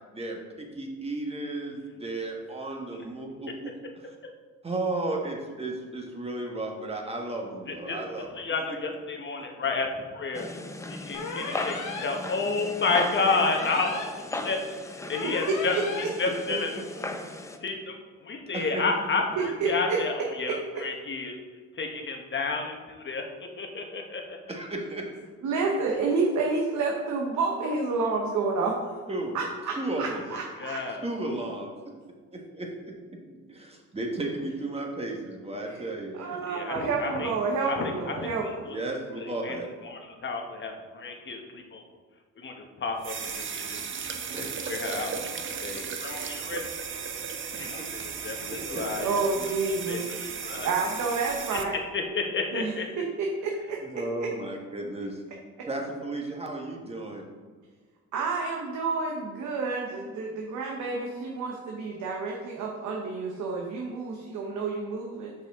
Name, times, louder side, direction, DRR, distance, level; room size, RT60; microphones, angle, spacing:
voice 1, 0.1-3.7 4.0-4.1 4.6-8.3 16.5-16.6 18.5-18.8 24.5-25.0 29.1-29.4 29.8-30.2 31.0-31.7 32.3-32.9 33.2-36.2 38.7-39.7 44.3-44.5 47.6-47.7 48.7-48.8 53.9-55.2 55.7-57.2, right 2 dB, 20° right, 0 dB, 1.3 m, -34 dB
voice 2, 7.7-10.5 10.9-16.7 17.6-21.3 21.7-23.2 23.6-24.4 30.3-31.1 36.5-37.3 37.7-38.8 39.2-39.5 39.8-41.8 42.4-43.8 44.3-46.7 47.5-47.8 48.2-49.5 49.9-50.7 51.5-51.6 51.9-53.0, left 3 dB, 40° left, 2 dB, 1.1 m, -31 dB
sound 1, 10.3-17.6, left 2 dB, 10° left, 0.5 m, -37 dB
sound 2, 11.1-12.0 13.1-14.0 15.1-16.0, left 3 dB, 75° left, 1.2 m, -35 dB
voice 3, 19.4-20.0 25.4-28.7 29.3-30.8 35.7-35.9 36.1-38.7 49.0-50.1 50.6-51.8 52.5-53.8 58.1-65.3, right 4 dB, 70° right, -1 dB, 0.9 m, -29 dB
sound 3, 43.0-51.6, right 6 dB, 40° right, 0.6 m, -35 dB
6.2 x 5.6 x 3.5 m, 1.5 s
cardioid pair, 90°, 30 cm